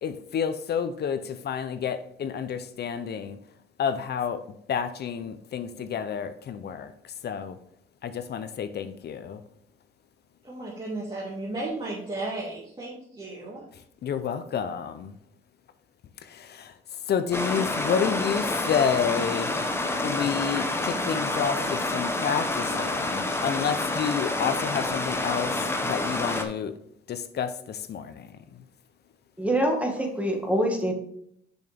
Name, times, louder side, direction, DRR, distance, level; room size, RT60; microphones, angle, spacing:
voice 1, 0.0-3.4 3.8-4.4 4.7-7.6 8.0-9.4 14.0-15.1 16.2-16.7 17.1-19.6 20.0-26.7 27.1-28.6, left 7 dB, 55° left, 11 dB, 0.6 m, -30 dB
voice 2, 10.4-13.6, right 2 dB, 25° right, -6 dB, 2.2 m, -34 dB
Stream, 17.3-26.4, left 2 dB, 10° left, 1.0 m, -28 dB
voice 3, 29.4-30.9, right 1 dB, 5° right, 2 dB, 1.8 m, -25 dB
6.7 x 6.3 x 3.5 m, 0.71 s
cardioid pair, 90°, 20 cm